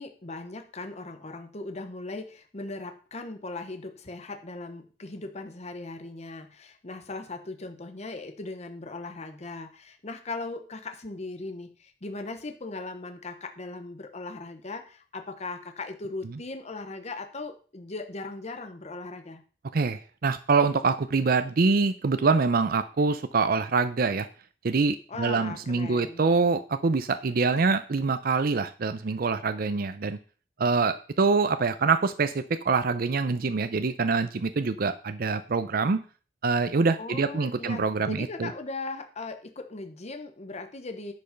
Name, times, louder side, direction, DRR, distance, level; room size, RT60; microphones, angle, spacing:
voice 1, 0.0-19.4 25.1-26.2 37.0-41.1, left 3 dB, 40° left, 7 dB, 0.9 m, -38 dB
voice 2, 19.7-24.3 24.6-30.2 30.6-36.0 36.4-38.5, right 4 dB, 55° right, 11 dB, 0.5 m, -25 dB
10.5 x 5.4 x 5.8 m, 0.40 s
head